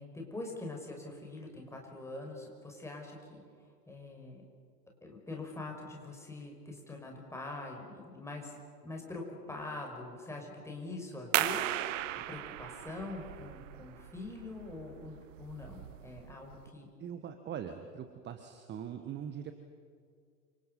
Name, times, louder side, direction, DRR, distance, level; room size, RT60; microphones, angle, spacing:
voice 1, 0.0-3.4 3.9-4.4 5.0-11.7 12.3-16.9, left 2 dB, 5° left, 0 dB, 5.7 m, -44 dB
sound 1, 11.3-16.7, right 14 dB, 50° right, 1.0 m, -36 dB
voice 2, 17.0-19.5, right 8 dB, 20° right, 8 dB, 1.4 m, -42 dB
29.0 x 26.5 x 5.5 m, 2.2 s
figure-of-eight pair, 100°, 49 cm